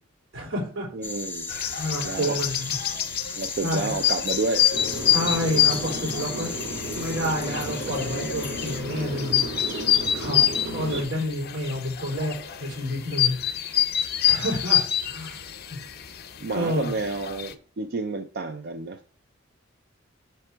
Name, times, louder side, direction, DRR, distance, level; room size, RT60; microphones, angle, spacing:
voice 1, 0.3-1.1 1.8-2.8 3.6-4.0 5.1-6.5 6.9-9.8 10.1-13.4 14.2-15.8 16.5-16.9, equal, 90° right, -2 dB, 3.5 m, -29 dB
voice 2, 0.9-1.5 2.0-2.4 3.4-4.7 10.3-10.6 10.9-11.0 16.4-19.0, right 3 dB, 55° right, 8 dB, 0.4 m, -30 dB
sound 1, 1.0-8.8, left 3 dB, 10° left, 0.6 m, -36 dB
sound 2, 1.5-17.5, left 10 dB, 50° left, 0.6 m, -27 dB
sound 3, 4.7-11.0, right 1 dB, 75° right, 1.7 m, -34 dB
5.9 x 4.5 x 4.5 m, 0.43 s
head